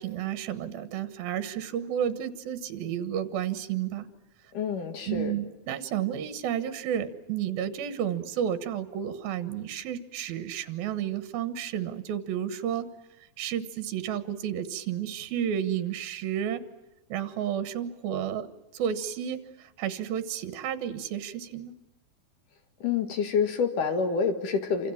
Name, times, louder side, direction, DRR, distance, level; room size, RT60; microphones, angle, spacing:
voice 1, 0.0-4.0 5.1-12.9 13.4-16.6 17.1-18.5 18.7-21.7, right 9 dB, 80° right, 11 dB, 3.2 m, -31 dB
voice 2, 4.5-5.3 22.8-24.9, left 6 dB, 65° left, 7 dB, 3.3 m, -27 dB
28.0 x 27.0 x 7.3 m, 0.94 s
omnidirectional pair, 4.2 m